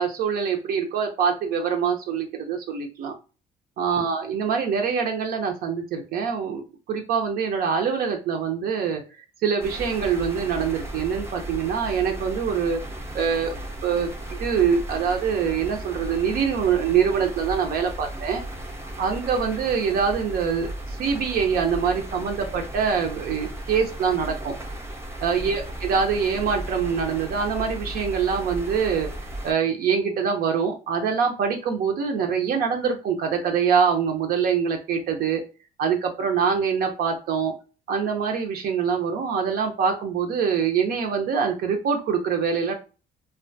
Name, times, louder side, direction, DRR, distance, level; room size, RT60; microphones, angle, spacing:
voice 1, 0.0-3.1 3.8-6.6 6.9-9.0 9.4-12.8 13.1-13.6 13.8-18.4 19.0-24.6 25.2-29.1 29.4-35.4 35.8-37.5 37.9-42.7, right 6 dB, 60° right, 3 dB, 0.5 m, -24 dB
sound 1, 9.6-29.5, right 1 dB, 15° right, 0.5 m, -35 dB
2.4 x 2.2 x 2.6 m, 0.33 s
cardioid pair, 110°, 17 cm